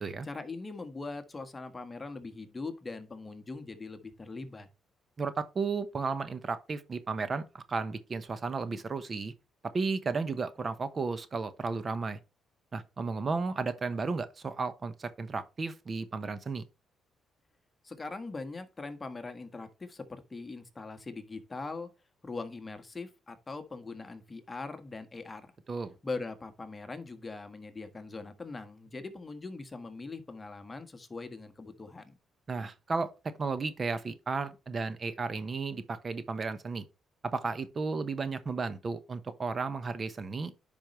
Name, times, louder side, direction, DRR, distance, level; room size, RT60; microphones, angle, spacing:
voice 1, 0.2-4.7 17.8-21.9 22.2-25.5 26.0-32.1, left 3 dB, 25° left, 1.5 m, -41 dB
voice 2, 5.2-9.3 9.7-12.2 12.7-16.6 25.7-25.9 32.5-33.1 33.4-36.9 37.2-40.5, right 4 dB, 35° right, 1.0 m, -33 dB
10.0 x 5.3 x 3.1 m
cardioid pair, 90°, 0 cm